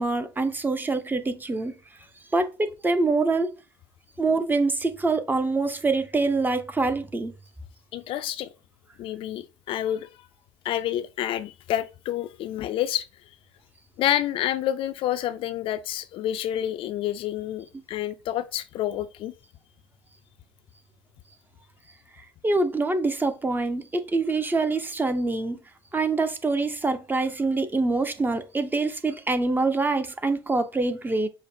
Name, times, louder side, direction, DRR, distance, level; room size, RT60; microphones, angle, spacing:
voice 1, 0.0-1.7 2.3-3.5 4.2-7.3 22.4-25.6 25.9-31.3, right 3 dB, 15° right, 0.6 m, -25 dB
voice 2, 7.9-8.5 9.0-10.1 10.6-13.1 14.0-19.3, left 12 dB, 45° left, 0.4 m, -28 dB
5.1 x 2.0 x 4.1 m
figure-of-eight pair, 65°, 12 cm